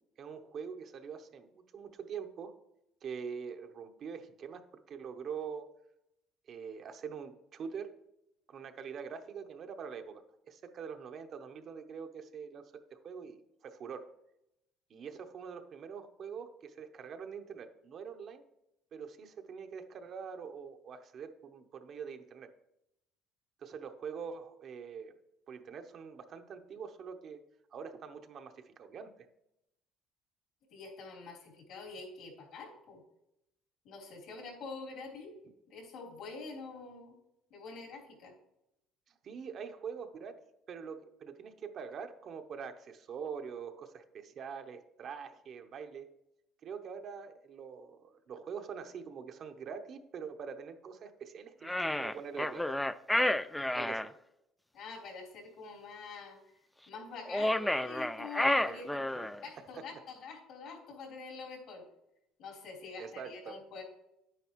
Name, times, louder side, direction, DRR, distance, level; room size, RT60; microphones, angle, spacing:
voice 1, 0.2-2.5 3.0-5.7 6.5-7.9 8.5-14.1 14.9-18.4 18.9-22.5 23.6-25.1 25.5-27.4 27.7-29.1 39.2-46.1 46.6-52.8 53.7-54.1 58.5-58.8 59.1-60.0 63.0-63.6, right 6 dB, 50° right, 7 dB, 0.9 m, -44 dB
voice 2, 30.7-33.0 33.8-35.3 35.7-37.2 37.5-38.3 54.7-56.4 56.9-59.0 59.4-61.8 62.4-63.8, left 4 dB, 70° left, -2 dB, 3.6 m, -46 dB
sound 1, 51.6-54.1 57.3-59.4, left 1 dB, 5° left, 0.3 m, -31 dB
9.7 x 9.0 x 3.1 m, 0.85 s
cardioid pair, 105°, 0 cm